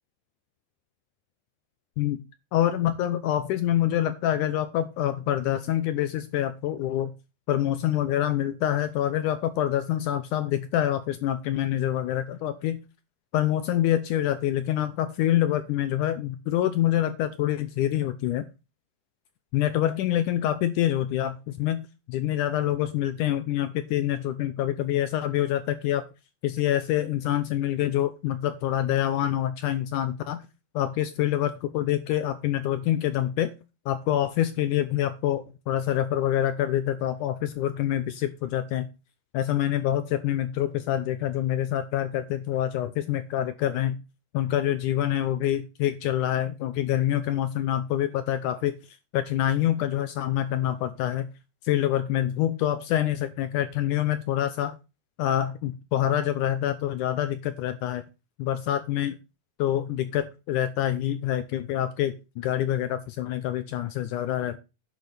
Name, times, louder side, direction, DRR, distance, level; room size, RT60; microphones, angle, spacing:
voice 1, 2.5-7.1 7.5-12.8 13.3-18.5 19.5-26.0 26.4-30.4 30.8-33.5 33.9-38.9 39.3-44.0 44.3-51.3 51.6-54.7 55.2-58.0 58.4-59.2 59.6-64.6, left 12 dB, 80° left, 11 dB, 1.9 m, -26 dB
10.5 x 5.2 x 6.0 m, 0.29 s
omnidirectional pair, 4.2 m